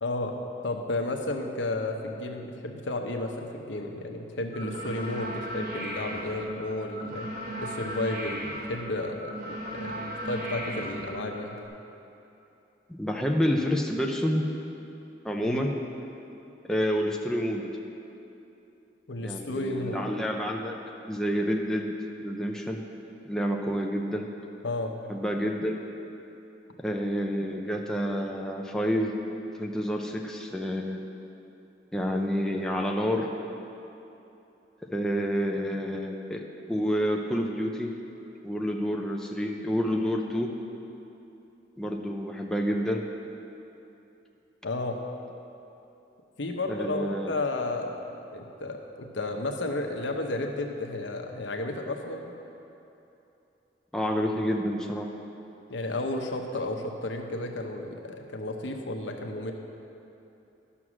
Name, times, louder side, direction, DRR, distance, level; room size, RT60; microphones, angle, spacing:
voice 1, 0.0-0.3 0.6-11.6 15.4-15.6 19.1-20.0 24.6-25.0 44.6-45.0 46.4-48.0 48.3-52.3 55.7-59.5, left 2 dB, 80° left, 3 dB, 0.9 m, -32 dB
sound 1, 4.5-11.7, right 1 dB, 50° right, 1.1 m, -37 dB
voice 2, 12.9-14.4 15.2-15.7 16.7-17.7 19.2-20.8 21.1-21.9 22.2-22.9 23.3-24.3 25.1-25.9 26.8-29.1 29.6-31.0 31.9-33.3 34.8-37.9 38.4-40.5 41.8-43.0 46.7-47.4 53.9-55.1, equal, 5° left, 0 dB, 0.5 m, -28 dB
11.5 x 6.1 x 6.2 m, 2.9 s
head